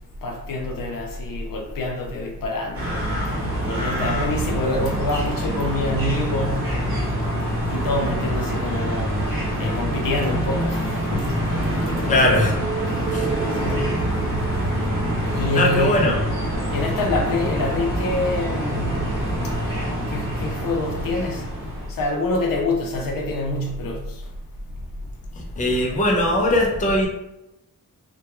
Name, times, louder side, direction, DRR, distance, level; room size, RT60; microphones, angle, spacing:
voice 1, 0.2-3.0 3.7-6.6 7.7-9.1 9.6-10.8 11.1-12.3 13.6-14.0 15.3-16.0 16.7-19.2 20.1-21.4 22.0-24.0, left 2 dB, 85° left, 0.6 m, -26 dB
sound 1, 2.7-21.9, right 1 dB, 40° right, 0.9 m, -25 dB
voice 2, 12.0-12.6 13.1-13.3 15.5-16.3 25.4-27.1, left 1 dB, 25° left, 0.4 m, -20 dB
2.3 x 2.2 x 2.9 m
wide cardioid pair, 165°, 33 cm